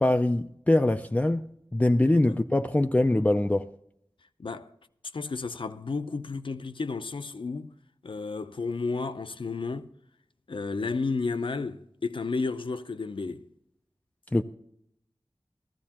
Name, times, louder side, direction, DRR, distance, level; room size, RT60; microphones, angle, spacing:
voice 1, 0.0-3.7 14.3-14.4, left 1 dB, 15° left, 0.4 m, -23 dB
voice 2, 4.4-4.7 5.1-7.7 8.0-9.9 10.5-13.5, left 4 dB, 65° left, 0.6 m, -32 dB
14.0 x 14.0 x 2.9 m
wide cardioid pair, 55°, 9 cm